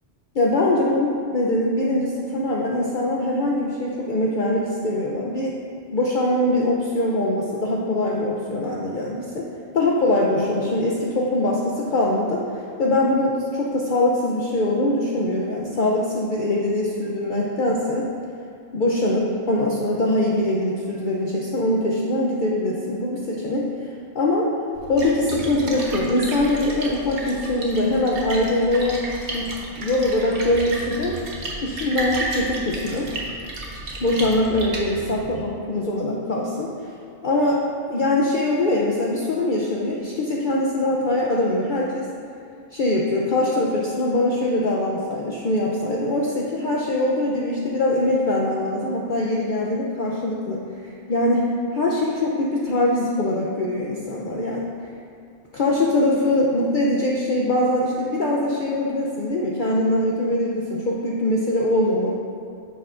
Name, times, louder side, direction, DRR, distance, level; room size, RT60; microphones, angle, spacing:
voice 1, 0.3-5.6 5.9-9.4 9.7-12.4 12.8-18.1 18.7-23.9 24.1-24.5 24.9-29.0 29.3-29.5 29.8-31.2 31.6-33.1 34.0-36.7 37.2-37.6 37.9-42.1 42.7-50.6 51.1-54.7 55.5-62.1, left 1 dB, 50° left, -3 dB, 0.8 m, -22 dB
Splash splatter, 24.7-35.3, right 2 dB, 75° right, 1.4 m, -32 dB
10.0 x 7.1 x 2.5 m, 2.3 s
omnidirectional pair, 1.2 m